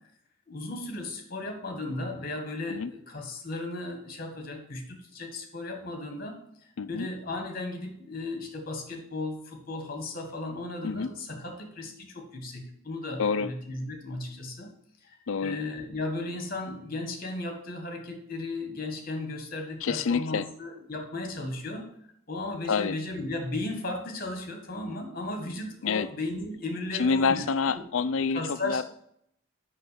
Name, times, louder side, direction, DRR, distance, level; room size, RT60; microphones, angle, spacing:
voice 1, 0.5-6.4 6.9-14.7 15.0-21.9 22.3-27.4 27.7-27.9 28.3-28.8, left 2 dB, 45° left, 4 dB, 1.7 m, -35 dB
voice 2, 6.8-7.1 10.8-11.1 13.2-13.5 15.3-15.6 19.8-20.5 22.7-23.0 25.8-26.1 26.9-28.8, left 5 dB, 70° left, 13 dB, 0.4 m, -27 dB
6.0 x 5.8 x 6.9 m, 0.70 s
head